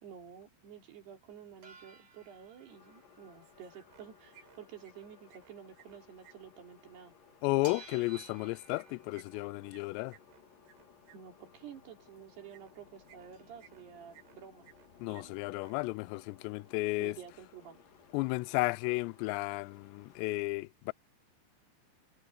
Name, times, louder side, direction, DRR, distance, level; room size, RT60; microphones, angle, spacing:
voice 1, 0.0-7.1 11.1-14.7 15.1-15.3 17.0-17.8, right 8 dB, 60° right, 5.0 m, -51 dB
sound 1, 1.3-6.5 6.8-12.4 12.9-13.0 13.1-17.1 17.3-18.3 18.6-18.7 18.9-19.9 20.4-20.5, right 3 dB, 35° right, 5.9 m, -59 dB
sound 2, 2.7-20.4, left 7 dB, 55° left, 3.6 m, -61 dB
sound 3, 3.4-4.1 4.3-6.4 7.8-11.2 12.5-12.7 13.1-13.8 14.1-14.9 15.1-15.2 15.5-15.8, right 11 dB, 90° right, 5.6 m, -60 dB
voice 2, 7.4-10.2 15.0-17.2 18.1-20.9, left 23 dB, 90° left, 2.5 m, -33 dB
omnidirectional pair, 5.5 m